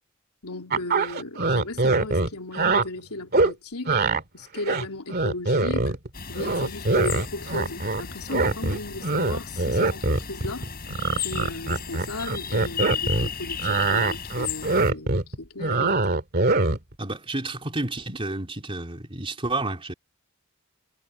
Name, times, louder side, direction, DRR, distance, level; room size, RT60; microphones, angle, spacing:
voice 1, 0.4-4.0 4.3-5.9 6.3-10.7 11.2-16.1, left 2 dB, 85° left, 3.6 m, -35 dB
sound 1, 0.7-2.8 3.3-3.5 3.9-4.2 4.6-6.1 6.4-8.0 8.3-13.3 13.6-16.9, right 3 dB, 45° right, 2.1 m, -23 dB
sound 2, 6.1-14.9, left 6 dB, 45° left, 4.9 m, -35 dB
voice 2, 17.0-19.9, right 2 dB, 25° right, 3.4 m, -30 dB
head